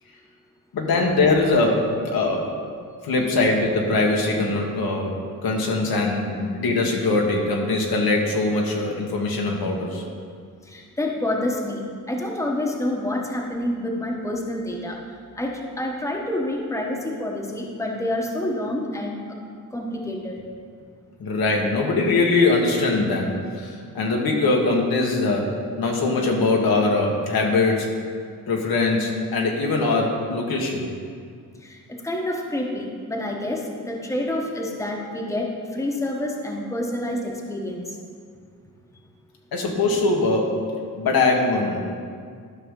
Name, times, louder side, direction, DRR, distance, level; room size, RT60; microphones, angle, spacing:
voice 1, 0.7-2.5 3.0-5.1 5.4-10.0 21.2-27.9 28.5-30.9 39.5-40.6 41.0-41.8, left 3 dB, 80° left, 0 dB, 1.5 m, -22 dB
voice 2, 10.7-11.8 12.1-15.0 15.4-19.4 19.7-20.4 32.0-37.8, left 1 dB, 10° left, -1 dB, 1.1 m, -28 dB
12.0 x 5.9 x 3.8 m, 2.1 s
cardioid pair, 105°, 36 cm